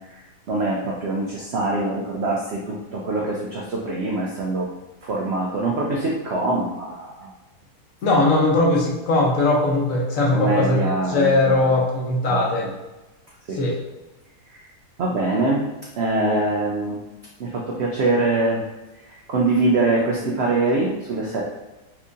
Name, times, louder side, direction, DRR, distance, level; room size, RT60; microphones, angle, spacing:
voice 1, 0.5-4.7 5.0-7.3 10.3-11.8 12.3-12.7 13.5-13.6 14.5-14.7 15.0-15.6 16.0-17.0 17.4-18.6 19.1-21.4, right 2 dB, 80° right, -2 dB, 0.5 m, -24 dB
voice 2, 8.0-10.8 11.1-12.7 13.5-13.8 16.3-16.4, left 2 dB, 65° left, -2 dB, 1.0 m, -19 dB
4.4 x 2.6 x 2.5 m, 1.1 s
omnidirectional pair, 1.7 m